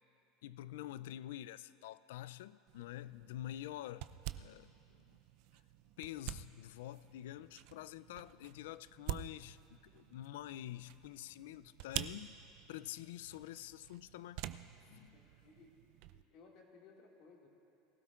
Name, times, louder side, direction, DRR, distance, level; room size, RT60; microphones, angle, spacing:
voice 1, 0.4-5.0 6.0-12.4 12.7-14.4 14.9-15.2, left 13 dB, 90° left, 0.3 m, -47 dB
sound 1, 2.7-16.2, right 13 dB, 55° right, 0.4 m, -48 dB
voice 2, 15.1-15.8 16.1-17.5, left 4 dB, 45° left, 2.0 m, -61 dB
22.5 x 16.0 x 2.4 m
supercardioid pair, 155°, 0 cm